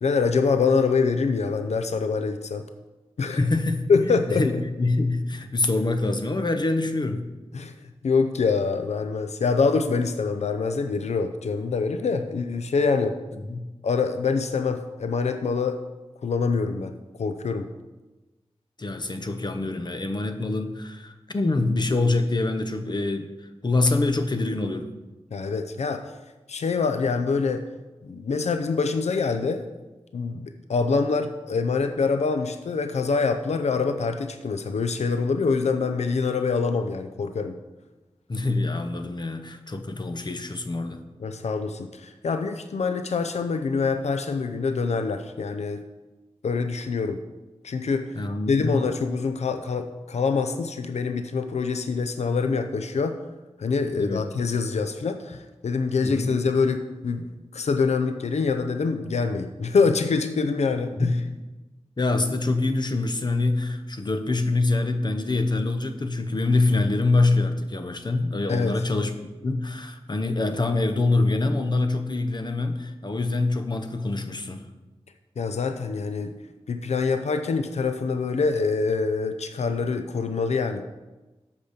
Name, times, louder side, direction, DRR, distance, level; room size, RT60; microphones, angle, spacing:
voice 1, 0.0-2.7 3.2-3.4 3.9-4.6 7.5-7.7 8.0-13.2 13.8-15.8 16.2-16.9 17.2-17.7 25.3-26.1 26.5-27.6 28.0-29.7 30.1-37.6 41.2-45.8 46.4-47.2 47.6-48.2 48.5-53.2 53.6-61.1 68.5-68.7 75.4-76.3 76.7-80.8, left 4 dB, 85° left, 7 dB, 0.5 m, -25 dB
voice 2, 3.3-7.2 13.3-13.6 18.8-23.3 23.6-24.9 38.3-41.0 48.1-48.8 53.9-54.2 56.0-56.3 61.0-61.1 62.0-69.1 69.4-74.6, left 2 dB, 40° left, 7 dB, 0.8 m, -25 dB
7.9 x 5.1 x 6.6 m, 1.1 s
wide cardioid pair, 70°, 11 cm